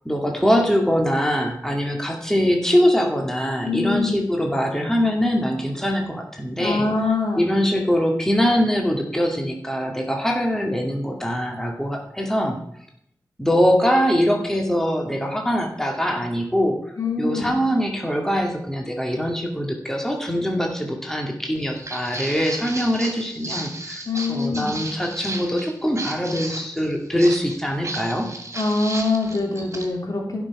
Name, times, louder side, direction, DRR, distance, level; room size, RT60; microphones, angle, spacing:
voice 1, 0.1-6.9 7.4-12.6 13.4-16.8 17.2-24.0 24.3-28.3, equal, 5° left, 1 dB, 2.1 m, -22 dB
voice 2, 3.6-4.2 6.6-7.5 17.0-17.6 24.1-24.8 28.5-30.4, left 3 dB, 55° left, 0 dB, 3.1 m, -24 dB
Walk footsteps, 21.6-29.9, right 2 dB, 40° right, 2.8 m, -34 dB
16.0 x 6.1 x 4.8 m, 0.73 s
wide cardioid pair, 55°, 7 cm